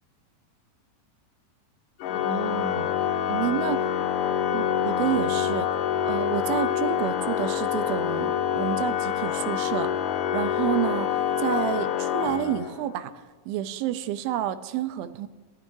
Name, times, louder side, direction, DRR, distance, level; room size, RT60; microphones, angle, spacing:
Organ, 2.0-13.0, left 9 dB, 80° left, 2.0 m, -26 dB
voice 1, 2.2-2.9 3.3-3.8 4.5-5.7 6.1-9.9 10.3-13.1 13.5-15.3, right 12 dB, 85° right, 10 dB, 2.4 m, -29 dB
18.5 x 13.0 x 2.7 m, 1.3 s
omnidirectional pair, 4.3 m